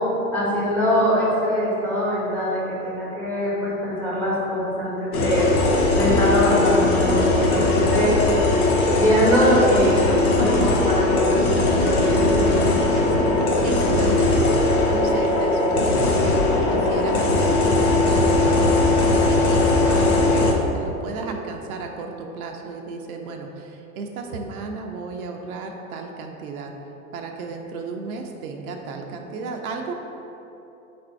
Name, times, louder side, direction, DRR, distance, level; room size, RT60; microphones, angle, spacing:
voice 1, 0.3-5.5 5.9-8.1 8.9-12.6, equal, 5° left, -7 dB, 1.1 m, -23 dB
sound 1, 5.1-20.5, left 2 dB, 90° left, 0.7 m, -19 dB
voice 2, 12.9-14.5 14.9-26.7 27.1-30.0, right 4 dB, 75° right, 3 dB, 0.6 m, -33 dB
4.1 x 2.5 x 4.5 m, 3.0 s
hypercardioid pair, 110°, 43 cm